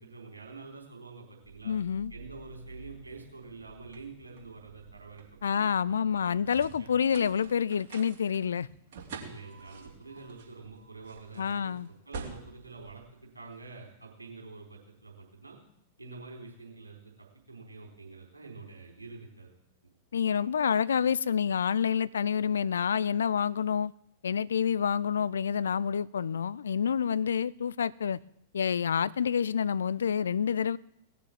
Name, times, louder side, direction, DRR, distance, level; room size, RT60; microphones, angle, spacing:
voice 1, 0.0-1.8 2.1-6.9 9.2-11.7 12.1-15.6 16.0-17.1 17.5-19.5 19.8-19.9, right 3 dB, 85° right, 4.0 m, -47 dB
sound 1, 1.4-13.8, right 4 dB, 55° right, 3.3 m, -48 dB
voice 2, 1.6-2.1 5.4-8.7 11.4-11.9 20.1-23.9 24.2-28.2 28.5-30.8, left 7 dB, 70° left, 0.4 m, -28 dB
18.5 x 6.8 x 7.4 m
figure-of-eight pair, 95°, 0 cm